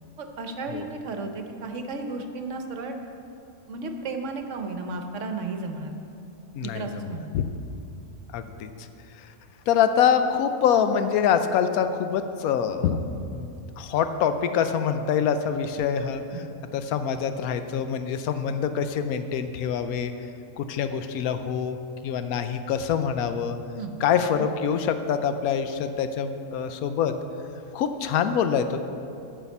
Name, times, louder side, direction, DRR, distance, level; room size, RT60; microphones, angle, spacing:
voice 1, 0.2-3.0 3.7-5.9 6.6-7.3 16.3-16.5 23.8-23.9, right 3 dB, 60° right, 5 dB, 1.1 m, -33 dB
voice 2, 6.5-7.1 7.3-7.4 8.3-8.7 9.7-13.0 13.3-13.5 13.8-16.2 16.7-20.1 20.6-21.8 22.0-23.6 24.0-27.1 27.7-28.8, left 7 dB, 85° left, 9 dB, 1.1 m, -25 dB
9.6 x 5.8 x 7.1 m, 2.6 s
omnidirectional pair, 1.5 m